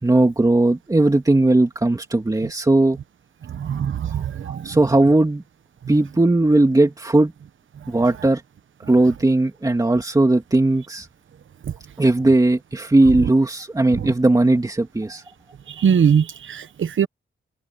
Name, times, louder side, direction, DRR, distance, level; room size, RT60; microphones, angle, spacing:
voice 1, 0.0-3.0 4.6-5.4 5.9-7.3 7.9-8.4 8.9-11.1 12.0-15.2, right 2 dB, 15° right, 2.8 m, -17 dB
voice 2, 3.6-4.7 15.8-17.1, right 7 dB, 75° right, 1.1 m, -21 dB
wide cardioid pair, 140°, 20 cm